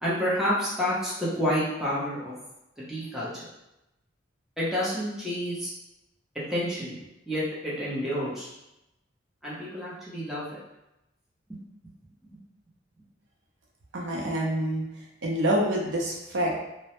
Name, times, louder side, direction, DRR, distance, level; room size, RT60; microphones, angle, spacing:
voice 1, 0.0-2.3 2.9-3.3 4.6-5.7 6.5-6.9 7.3-8.5 9.4-10.4 12.3-12.4, equal, ahead, -8 dB, 0.7 m, -29 dB
voice 2, 13.9-14.8 15.2-16.6, right 1 dB, 70° right, -2 dB, 0.5 m, -26 dB
2.1 x 2.0 x 2.9 m, 0.90 s
head